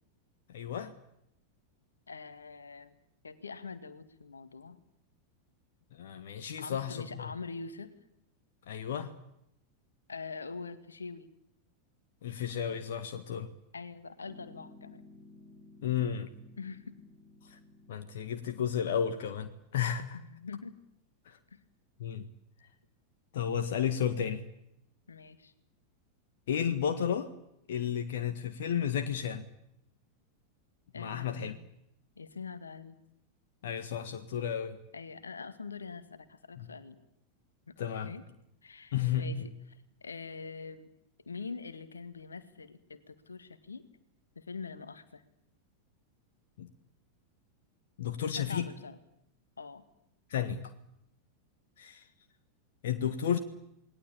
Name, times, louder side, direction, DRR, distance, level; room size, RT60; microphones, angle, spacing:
voice 1, 0.5-0.9 5.9-7.3 8.7-9.1 12.2-13.5 15.8-16.3 17.5-17.6 17.9-20.2 21.3-21.4 22.0-22.3 23.3-24.4 26.5-27.3 27.7-29.4 30.9-31.5 33.6-34.8 36.6-36.7 37.8-38.1 38.9-39.5 46.6-46.7 48.0-48.7 50.3-50.6 51.8-52.0 52.8-53.4, left 8 dB, 55° left, 8 dB, 1.7 m, -32 dB
voice 2, 2.1-2.9 3.2-4.8 6.6-7.9 10.1-11.3 13.7-15.0 16.6-17.0 20.1-20.8 21.5-21.6 25.1-25.5 30.9-31.5 32.2-33.0 34.9-37.0 37.7-38.2 38.6-40.9 41.3-43.8 44.4-45.2 48.3-49.0 49.6-49.9, left 4 dB, 75° left, 11 dB, 1.9 m, -44 dB
Piano, 14.2-19.3, left 2 dB, 15° right, 6.5 m, -56 dB
28.0 x 20.0 x 8.8 m, 0.79 s
figure-of-eight pair, 90°, 0 cm